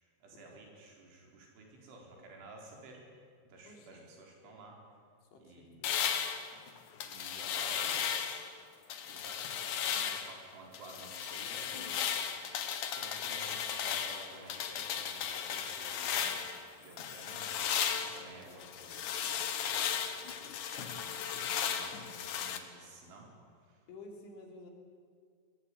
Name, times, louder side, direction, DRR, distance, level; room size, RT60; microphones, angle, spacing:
voice 1, 0.2-3.0 3.5-4.8 5.4-5.8 7.0-8.4 9.0-12.1 12.6-16.4 16.8-19.1 19.4-23.3 23.6-23.8, right 2 dB, 90° right, 0 dB, 6.6 m, -53 dB
voice 2, 3.7-4.1 5.3-5.9 23.9-24.7, left 2 dB, 85° left, 2 dB, 5.7 m, -52 dB
sound 1, 5.8-8.5 8.9-10.4 10.7-16.6 17.0-22.6, left 8 dB, 65° left, 2.1 m, -35 dB
22.0 x 21.0 x 9.6 m, 2.1 s
omnidirectional pair, 5.3 m